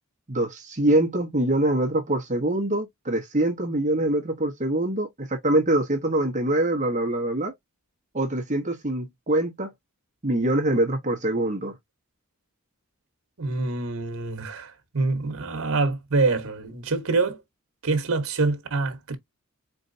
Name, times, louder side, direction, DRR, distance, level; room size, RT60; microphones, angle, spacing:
voice 1, 0.3-7.5 8.1-9.7 10.2-11.8, right 1 dB, 35° right, 1.1 m, -24 dB
voice 2, 13.4-17.4 17.8-19.2, right 3 dB, 80° right, 1.2 m, -25 dB
4.5 x 3.2 x 2.7 m
head